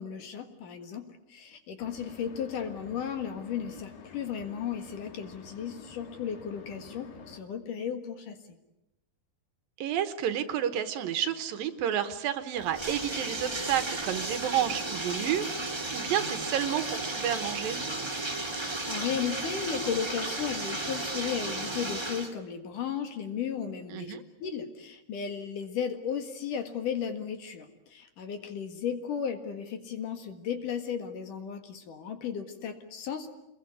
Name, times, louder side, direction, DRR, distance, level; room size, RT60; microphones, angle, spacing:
voice 1, 0.0-8.4 18.5-24.1 24.4-33.3, left 7 dB, 60° left, 6 dB, 3.1 m, -35 dB
sound 1, 1.8-7.4, left 5 dB, 80° left, 4.5 m, -49 dB
voice 2, 9.8-17.8 23.9-24.2, right 10 dB, 75° right, 10 dB, 2.7 m, -30 dB
Bathtub (filling or washing), 12.6-22.3, right 2 dB, 15° right, 0.8 m, -34 dB
27.0 x 21.5 x 8.5 m, 0.90 s
omnidirectional pair, 4.5 m